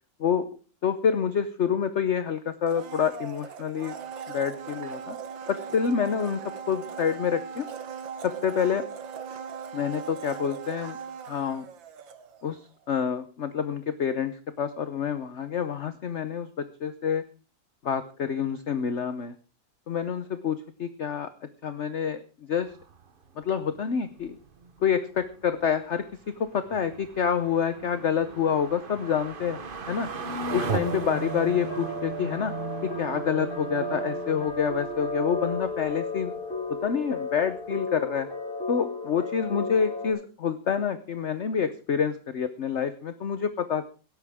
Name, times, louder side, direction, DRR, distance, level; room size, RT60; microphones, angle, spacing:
voice 1, 0.8-3.9 4.3-5.2 5.5-6.4 6.7-7.7 8.2-8.8 9.7-11.0 11.3-11.7 12.4-12.6 12.9-16.5 16.8-17.2 17.8-19.3 19.9-21.3 21.6-22.2 22.5-22.7 23.4-24.4 24.8-26.0 26.4-29.6 29.9-30.1 30.5-32.5 33.0-36.3 36.8-38.3 38.7-43.8, left 7 dB, 50° left, 11 dB, 0.9 m, -27 dB
Domestic sounds home sounds, 2.6-12.6 12.9-13.0, right 6 dB, 80° right, 1.9 m, -39 dB
sound 1, 22.6-36.8 37.1-37.2 37.6-37.7, right 4 dB, 35° right, 0.9 m, -38 dB
sound 2, 30.5-40.1, left 1 dB, 30° left, 2.5 m, -34 dB
17.0 x 13.0 x 3.6 m, 0.36 s
omnidirectional pair, 2.0 m